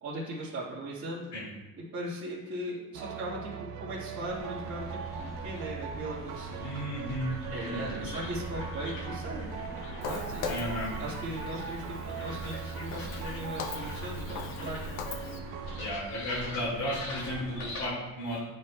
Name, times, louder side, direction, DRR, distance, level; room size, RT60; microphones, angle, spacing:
voice 1, 0.0-1.2 1.9-5.0 5.2-6.6 7.5-9.5 10.0-14.8, right 1 dB, 45° right, -10 dB, 1.6 m, -38 dB
sound 1, 2.9-15.9, right 6 dB, 90° right, 0.6 m, -40 dB
sound 2, 4.2-17.9, left 1 dB, 90° left, 1.6 m, -42 dB
voice 2, 6.6-8.1 10.4-10.9 15.7-18.4, equal, 50° left, -7 dB, 1.8 m, -34 dB
Walk footsteps, 10.0-15.4, left 6 dB, 65° left, 0.6 m, -41 dB
10.5 x 4.5 x 2.2 m, 1.1 s
cardioid pair, 160°, 34 cm